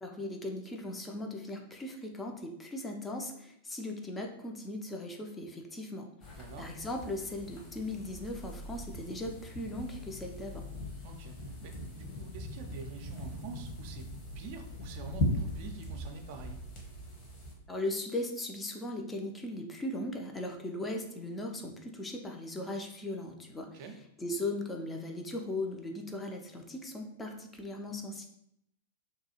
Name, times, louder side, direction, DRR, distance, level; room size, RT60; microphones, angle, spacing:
voice 1, 0.0-6.1 6.6-10.6 17.7-23.8 24.2-28.3, left 1 dB, 15° left, 2 dB, 0.4 m, -38 dB
sound 1, 6.2-17.5, left 1 dB, 40° left, 0.9 m, -40 dB
voice 2, 6.3-6.7 11.0-14.1 14.4-16.6 23.7-24.0, right 3 dB, 50° right, 5 dB, 0.4 m, -46 dB
2.7 x 2.3 x 2.8 m, 0.76 s
figure-of-eight pair, 100°, 0 cm